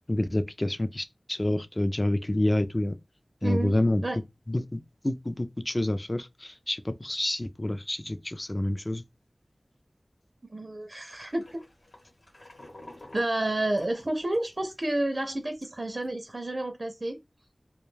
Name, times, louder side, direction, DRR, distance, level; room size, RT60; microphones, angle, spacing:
voice 1, 0.1-2.9 3.4-4.0 4.5-9.0, left 1 dB, 30° left, 0.3 m, -28 dB
voice 2, 3.4-3.8 4.0-4.2 10.5-11.6 13.1-17.2, right 1 dB, 45° right, 0.4 m, -30 dB
sound 1, 11.1-14.9 15.2-15.3 15.6-16.1, left 1 dB, 80° left, 1.0 m, -50 dB
2.3 x 2.2 x 3.1 m
wide cardioid pair, 55°, 0 cm